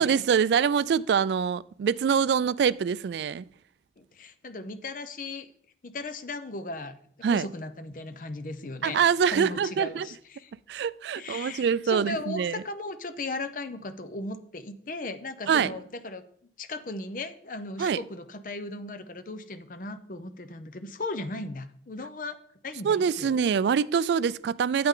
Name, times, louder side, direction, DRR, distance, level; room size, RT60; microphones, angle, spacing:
voice 1, 0.0-3.4 7.2-7.5 8.8-10.1 10.7-12.6 15.5-15.7 17.8-18.0 22.8-24.9, right 7 dB, 70° right, 0.3 m, -24 dB
voice 2, 4.0-5.5 5.8-6.9 7.3-9.0 9.3-10.5 11.2-16.2 16.6-22.4 22.6-23.3, left 2 dB, 45° left, 0.6 m, -37 dB
8.8 x 8.6 x 3.7 m
head